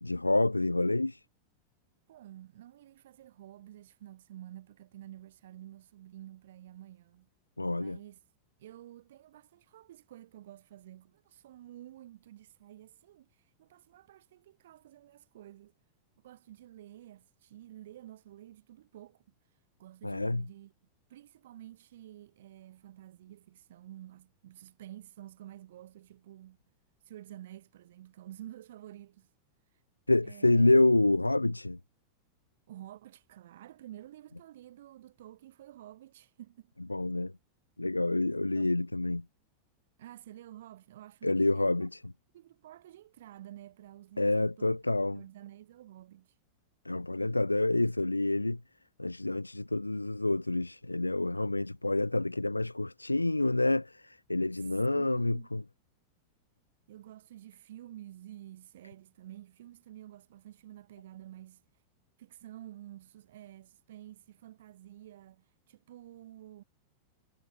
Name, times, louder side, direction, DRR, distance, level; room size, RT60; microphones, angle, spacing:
voice 1, 0.0-1.2 7.6-8.0 20.0-20.4 30.1-31.8 36.9-37.3 37.8-39.2 41.2-42.1 44.2-45.2 46.8-48.6 49.0-55.6, left 2 dB, 85° left, 0.4 m, -28 dB
voice 2, 2.1-7.3 7.8-8.2 8.6-15.8 16.2-19.2 19.8-20.7 21.1-26.6 27.0-29.3 30.2-31.1 32.7-36.7 38.5-38.8 40.0-41.9 42.3-46.3 54.6-55.5 56.9-61.6 62.2-66.6, right 13 dB, 60° right, 2.8 m, -50 dB
figure-of-eight pair, 90°, 0 cm